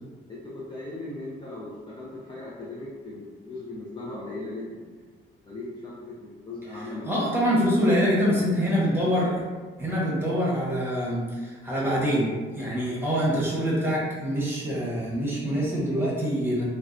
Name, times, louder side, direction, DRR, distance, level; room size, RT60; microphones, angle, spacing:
voice 1, 0.3-5.0 5.5-7.3, left 2 dB, 25° left, -7 dB, 0.5 m, -38 dB
voice 2, 6.7-9.4 9.8-16.6, equal, 10° right, -6 dB, 0.9 m, -25 dB
2.6 x 2.1 x 2.4 m, 1.4 s
cardioid pair, 90°, 20 cm